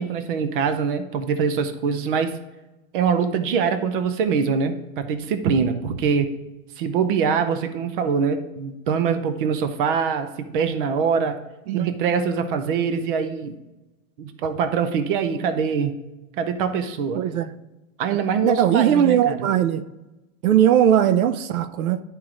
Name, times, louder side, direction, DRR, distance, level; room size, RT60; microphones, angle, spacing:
voice 1, 0.0-2.3 2.9-6.3 6.8-11.4 11.7-13.5 14.2-16.0 16.4-17.2 18.0-19.5, right 6 dB, 40° right, 9 dB, 0.7 m, -23 dB
voice 2, 17.1-17.5 18.4-19.8 20.4-22.0, right 10 dB, 85° right, 13 dB, 0.7 m, -19 dB
11.0 x 4.7 x 3.7 m, 1.0 s
supercardioid pair, 175°, 41 cm